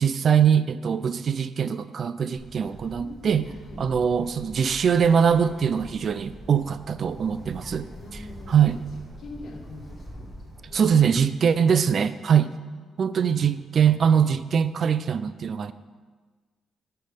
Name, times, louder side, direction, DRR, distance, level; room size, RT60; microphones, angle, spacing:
voice 1, 0.0-3.4 3.8-7.9 8.5-8.8 10.7-12.5 13.0-15.7, right 7 dB, 50° right, 14 dB, 0.3 m, -22 dB
Bird, 2.3-11.2, equal, 15° right, 1.8 m, -44 dB
voice 2, 2.9-3.8 4.4-4.5 8.0-10.9 12.4-13.1 13.3-13.5, left 2 dB, 60° left, 1 dB, 1.4 m, -45 dB
9.2 x 4.5 x 5.0 m, 1.4 s
cardioid pair, 90°, 0 cm